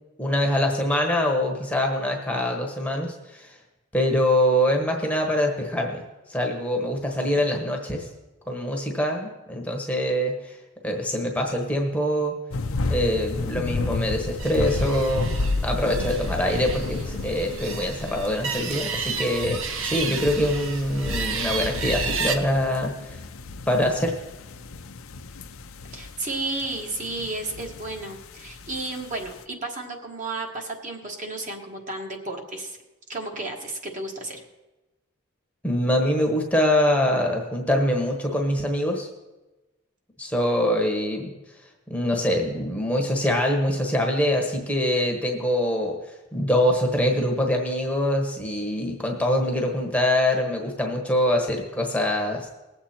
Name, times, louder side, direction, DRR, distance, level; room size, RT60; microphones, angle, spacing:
voice 1, 0.2-3.5 3.9-6.0 6.3-8.1 8.5-10.6 10.8-12.3 12.9-15.3 15.6-23.2 23.7-24.1 35.6-39.1 40.2-41.3 41.9-46.0 46.3-52.5, left 1 dB, 5° left, 1 dB, 1.2 m, -24 dB
sound 1, 12.5-29.4, left 3 dB, 75° left, 0.7 m, -32 dB
sound 2, 14.4-22.4, right 4 dB, 65° right, 1.1 m, -31 dB
voice 2, 25.9-32.8 33.1-34.4, right 2 dB, 35° right, 1 dB, 1.5 m, -33 dB
20.0 x 7.8 x 4.4 m, 1.1 s
head